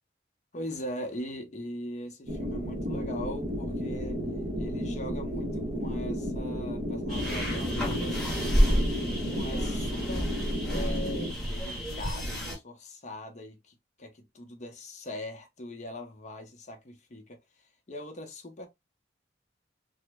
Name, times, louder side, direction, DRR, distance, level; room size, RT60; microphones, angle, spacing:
voice 1, 0.5-4.2 4.6-8.8 9.2-10.3 10.7-17.4 17.9-18.7, left 1 dB, 40° left, 0.6 m, -41 dB
sound 1, 2.3-11.3, equal, 35° right, 0.8 m, -33 dB
sound 2, 7.1-12.6, equal, ahead, 1.1 m, -29 dB
3.0 x 2.0 x 3.2 m
head